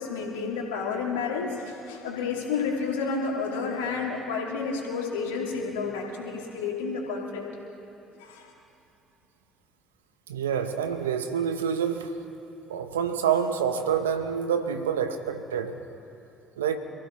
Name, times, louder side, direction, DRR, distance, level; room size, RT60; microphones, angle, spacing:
voice 1, 0.0-7.4 8.2-8.5, left 5 dB, 80° left, -1 dB, 2.5 m, -30 dB
voice 2, 10.3-12.1 12.7-15.8 16.6-16.8, right 7 dB, 85° right, 7 dB, 1.0 m, -27 dB
27.5 x 15.5 x 3.2 m, 2.8 s
hypercardioid pair, 50°, 0 cm